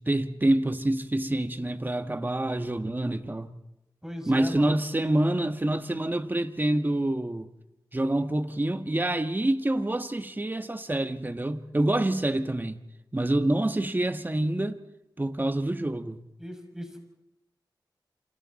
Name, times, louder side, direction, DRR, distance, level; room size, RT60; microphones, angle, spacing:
voice 1, 0.0-3.5 4.3-7.5 7.9-12.8 13.1-14.8 15.2-16.2, right 1 dB, 25° right, 1.5 m, -27 dB
voice 2, 4.0-4.8 16.4-17.0, equal, 5° right, 6.2 m, -38 dB
29.0 x 27.0 x 4.3 m
cardioid pair, 60°, 8 cm